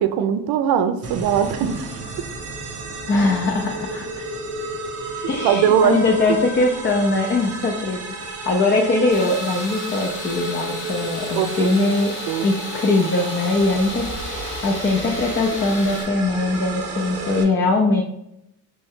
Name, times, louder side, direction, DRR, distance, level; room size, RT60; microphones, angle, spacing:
voice 1, 0.0-1.9 5.4-6.0 6.3-6.4 11.3-11.7 12.3-12.5, right 8 dB, 70° right, 9 dB, 0.5 m, -20 dB
sound 1, 1.0-17.4, right 2 dB, 40° right, 0.9 m, -32 dB
voice 2, 3.1-4.3 5.3-12.2 12.4-18.0, left 2 dB, 30° left, 1 dB, 0.5 m, -21 dB
Tools, 9.1-16.0, left 3 dB, 85° left, 0.8 m, -35 dB
3.3 x 2.6 x 3.5 m, 0.80 s
cardioid pair, 95°, 38 cm